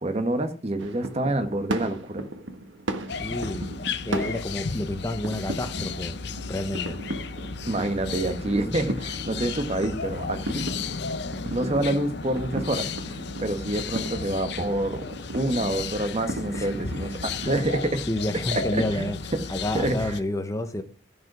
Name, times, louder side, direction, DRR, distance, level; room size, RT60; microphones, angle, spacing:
voice 1, 0.0-2.2 7.7-10.6 11.5-15.0 15.3-18.0 18.7-19.1 19.7-20.2, right 1 dB, 35° right, 9 dB, 1.2 m, -27 dB
sound 1, 0.8-17.7, right 1 dB, 75° right, 1.3 m, -37 dB
sound 2, 3.1-20.2, left 5 dB, 60° left, 0.8 m, -34 dB
voice 2, 3.2-3.7 4.0-6.2 6.5-7.0 16.5-16.8 18.1-19.2 19.5-20.8, left 1 dB, 15° left, 9 dB, 0.9 m, -29 dB
14.5 x 5.4 x 6.0 m, 0.38 s
head